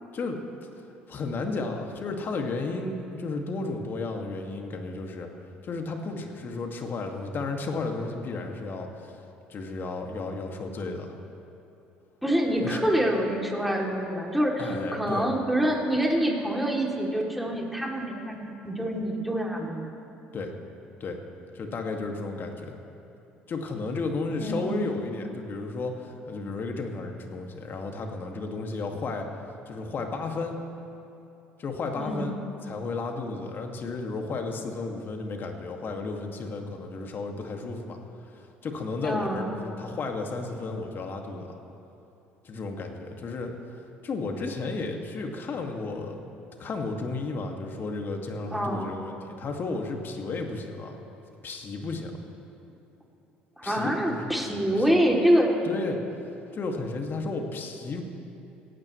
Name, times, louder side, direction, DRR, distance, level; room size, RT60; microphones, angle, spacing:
voice 1, 1.1-5.3 5.6-9.1 9.5-11.1 12.6-12.8 14.6-15.3 20.3-20.5 21.0-21.2 21.5-22.8 23.5-30.6 31.6-32.3 32.6-38.0 38.6-41.6 42.4-43.5 44.0-46.2 46.6-51.0 51.4-52.2 53.6-54.8 55.7-56.0 56.5-58.0, left 3 dB, 40° left, 3 dB, 2.2 m, -33 dB
voice 2, 12.2-19.9 24.4-24.9 32.0-32.4 39.0-39.6 48.5-48.9 53.6-55.6, equal, ahead, -1 dB, 3.0 m, -26 dB
28.0 x 15.0 x 3.3 m, 2.9 s
hypercardioid pair, 60°, 5 cm